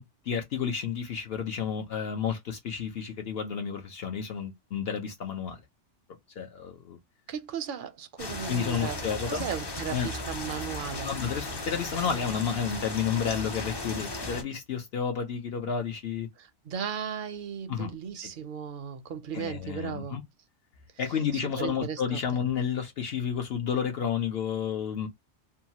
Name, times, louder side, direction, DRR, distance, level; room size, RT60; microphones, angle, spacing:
voice 1, 0.0-5.6 6.4-7.0 8.5-9.5 9.9-10.2 11.0-16.3 17.7-17.9 18.2-18.3 19.3-20.2 21.0-25.1, left 7 dB, 60° left, 0.8 m, -31 dB
voice 2, 7.3-9.0 9.3-11.1 16.4-20.2 21.6-22.2, right 7 dB, 60° right, 0.6 m, -36 dB
sound 1, 8.2-14.4, left 2 dB, 35° left, 0.4 m, -36 dB
2.8 x 2.3 x 2.8 m
omnidirectional pair, 1.2 m